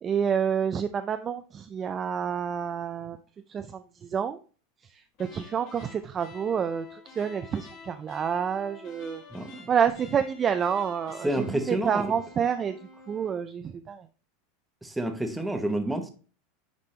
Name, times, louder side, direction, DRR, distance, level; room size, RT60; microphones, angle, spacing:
voice 1, 0.0-3.2 3.5-4.4 4.9-9.2 9.7-12.8 13.1-14.1, right 7 dB, 20° right, 10 dB, 0.4 m, -28 dB
sound 1, 5.1-13.4, left 4 dB, 45° left, 1.9 m, -49 dB
voice 2, 9.3-9.7 11.2-12.1 14.8-16.1, right 1 dB, 5° right, 6 dB, 1.0 m, -29 dB
9.8 x 3.6 x 3.2 m, 0.38 s
supercardioid pair, 155°, 0 cm